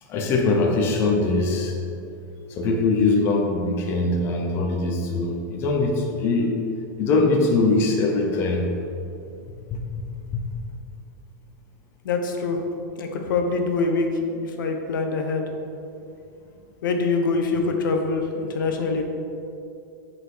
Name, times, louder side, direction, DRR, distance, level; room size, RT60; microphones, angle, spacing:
voice 1, 0.1-1.7 2.6-6.6 7.0-8.7 9.7-9.8 10.3-10.4, left 3 dB, 20° left, 1 dB, 0.6 m, -22 dB
voice 2, 12.0-12.6 13.0-14.1 14.6-15.5 16.8-19.0, left 4 dB, 90° left, 4 dB, 1.0 m, -24 dB
8.2 x 4.2 x 4.8 m, 2.6 s
supercardioid pair, 175°, 10 cm